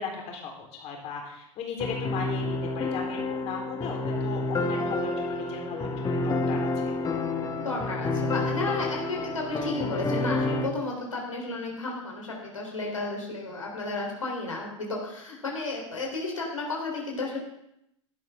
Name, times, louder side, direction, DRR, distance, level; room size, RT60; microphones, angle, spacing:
voice 1, 0.0-7.2, left 5 dB, 40° left, 0 dB, 4.0 m, -37 dB
sound 1, 1.8-10.7, left 2 dB, 20° left, 1.6 m, -29 dB
voice 2, 7.6-17.4, left 2 dB, 80° left, -1 dB, 3.8 m, -33 dB
17.0 x 12.0 x 3.7 m, 0.79 s
figure-of-eight pair, 85°, 17 cm